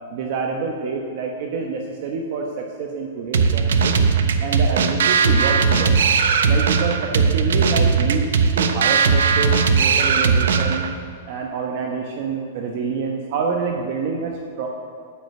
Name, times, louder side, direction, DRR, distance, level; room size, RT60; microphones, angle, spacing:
voice 1, 0.1-4.0 4.4-6.1 6.5-8.2 8.5-10.9 11.3-14.7, right 5 dB, 45° right, 1 dB, 1.1 m, -27 dB
sound 1, 3.3-11.0, right 5 dB, 85° right, 1.0 m, -18 dB
9.3 x 8.9 x 7.9 m, 2.3 s
supercardioid pair, 170°, 0 cm